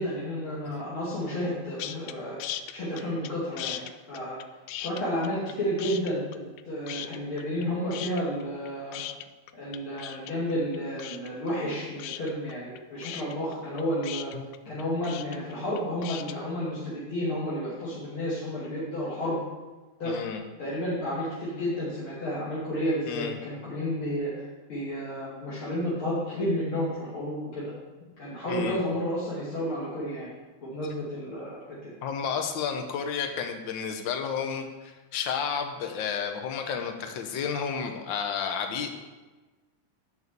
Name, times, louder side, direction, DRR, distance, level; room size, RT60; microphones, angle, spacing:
voice 1, 0.0-4.4 4.8-9.0 9.5-14.3 14.6-19.4 20.0-20.2 20.6-27.7 28.2-30.3 30.6-31.6, equal, 45° left, -9 dB, 3.4 m, -31 dB
sound 1, 1.8-2.1 2.4-3.3 3.6-5.5 5.8-6.6 6.9-7.6 7.9-16.4, left 13 dB, 80° left, 1.9 m, -38 dB
voice 2, 14.3-14.8 20.0-20.4 23.1-23.4 28.5-28.8 32.0-38.9, left 7 dB, 65° left, 5 dB, 1.2 m, -32 dB
11.0 x 5.7 x 8.0 m, 1.2 s
omnidirectional pair, 3.5 m